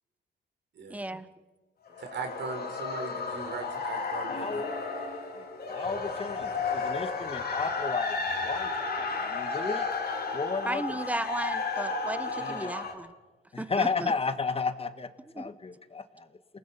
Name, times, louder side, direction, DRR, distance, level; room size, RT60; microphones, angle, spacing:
voice 1, 0.9-1.2 10.6-13.1 13.6-14.1 15.4-15.5, right 1 dB, 5° right, 14 dB, 1.0 m, -34 dB
sound 1, 1.9-12.9, left 4 dB, 50° left, 3.6 m, -33 dB
voice 2, 2.0-4.6, right 4 dB, 65° right, 5 dB, 4.4 m, -38 dB
voice 3, 4.3-4.7 5.4-9.9 10.3-11.0 12.4-12.7 13.5-15.1 15.4-16.3, left 4 dB, 30° left, 11 dB, 1.4 m, -33 dB
28.5 x 19.0 x 5.7 m, 1.2 s
cardioid pair, 90°, 20 cm